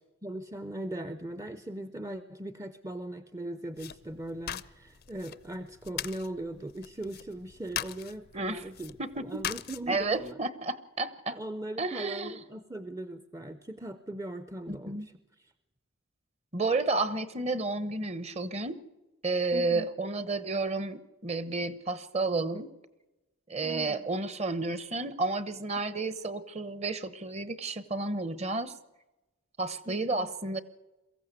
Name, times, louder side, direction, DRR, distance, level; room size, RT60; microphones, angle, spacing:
voice 1, 0.2-10.4 11.3-15.5 19.5-19.9 23.6-24.1 29.8-30.3, right 1 dB, 15° right, 11 dB, 0.6 m, -39 dB
sound 1, 3.8-10.3, left 10 dB, 45° left, 0.6 m, -41 dB
voice 2, 9.9-11.4 11.8-12.4 14.7-15.1 16.5-18.8 19.2-22.7 23.5-28.7 29.6-30.6, right 3 dB, 30° right, 15 dB, 1.0 m, -31 dB
22.5 x 15.0 x 8.1 m, 1.0 s
head